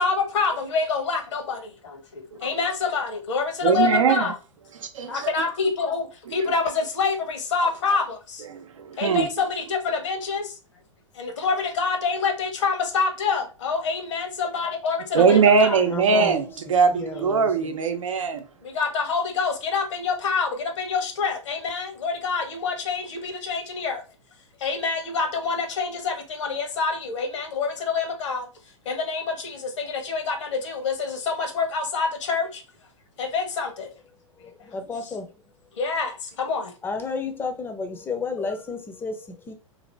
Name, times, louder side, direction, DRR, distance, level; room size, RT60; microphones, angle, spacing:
voice 1, 0.0-4.3 5.1-8.4 9.0-10.6 11.1-15.8 18.6-24.0 24.6-28.5 28.8-32.6 33.2-33.9 35.8-36.7, left 4 dB, 65° left, 1.0 m, -26 dB
voice 2, 3.6-4.3 4.8-5.3 6.3-6.4 8.5-9.3 15.1-18.4, right 5 dB, 75° right, 0.6 m, -21 dB
voice 3, 15.9-16.4 16.7-17.8 34.4-35.3 36.8-39.5, left 4 dB, 15° left, 0.5 m, -32 dB
2.7 x 2.5 x 3.2 m
hypercardioid pair, 105°, 17 cm